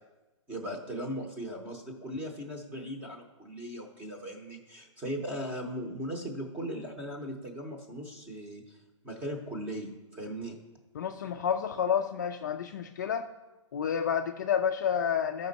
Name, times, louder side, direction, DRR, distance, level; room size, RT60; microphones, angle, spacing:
voice 1, 0.5-10.6, equal, 10° right, 2 dB, 0.8 m, -38 dB
voice 2, 10.9-13.3 13.7-15.5, left 8 dB, 35° left, 5 dB, 0.4 m, -30 dB
13.0 x 5.3 x 4.0 m, 1.1 s
hypercardioid pair, 170°, 16 cm